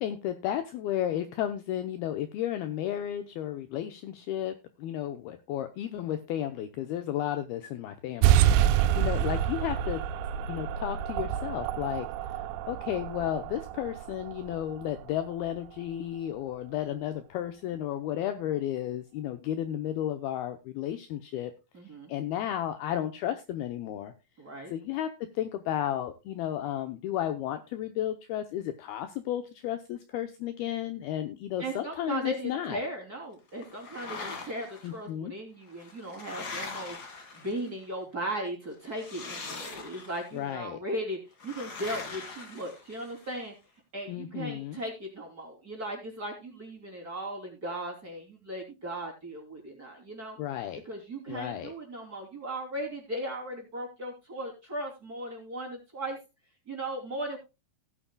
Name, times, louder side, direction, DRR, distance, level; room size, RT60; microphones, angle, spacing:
voice 1, 0.0-10.0 10.5-21.5 22.1-24.1 24.7-25.1 25.4-32.8 34.8-35.3 40.3-40.8 44.1-44.8 50.4-50.8 51.3-51.7, left 11 dB, 75° left, 8 dB, 2.4 m, -33 dB
sound 1, 8.2-15.3, right 11 dB, 90° right, 3.1 m, -27 dB
voice 2, 21.7-22.1 24.4-24.7 31.6-37.0 37.3-43.5 43.9-50.4 50.8-56.2 56.7-57.4, right 1 dB, 25° right, 0 dB, 3.0 m, -37 dB
sound 2, 33.6-34.9 35.7-37.8 38.9-40.3 41.4-43.3, left 4 dB, 50° left, 1.2 m, -41 dB
17.0 x 9.9 x 2.2 m, 0.27 s
omnidirectional pair, 5.1 m